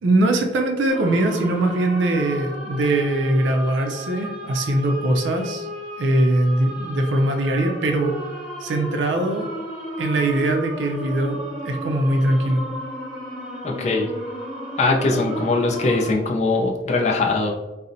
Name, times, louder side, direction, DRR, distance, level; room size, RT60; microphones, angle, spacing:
voice 1, 0.0-5.7 6.0-8.1 8.6-9.5 10.0-11.4 11.6-12.7, right 1 dB, 80° right, 4 dB, 0.4 m, -21 dB
sound 1, 0.9-16.1, equal, ahead, 0.9 m, -34 dB
voice 2, 13.6-14.1 14.8-17.5, left 3 dB, 40° left, 1 dB, 0.4 m, -21 dB
4.0 x 2.0 x 2.5 m, 1.1 s
head